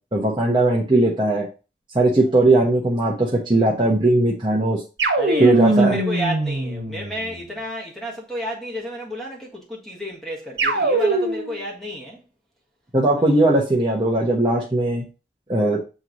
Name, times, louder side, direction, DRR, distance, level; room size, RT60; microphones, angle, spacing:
voice 1, 0.1-1.5 1.9-4.8 5.4-6.0 12.9-15.0 15.5-15.8, right 2 dB, 25° right, 1.0 m, -18 dB
sound 1, 5.0-7.5 10.6-11.6, right 2 dB, 80° right, 1.3 m, -21 dB
voice 2, 5.2-12.2 13.1-13.7, left 1 dB, 5° left, 1.5 m, -31 dB
7.7 x 3.1 x 3.9 m
head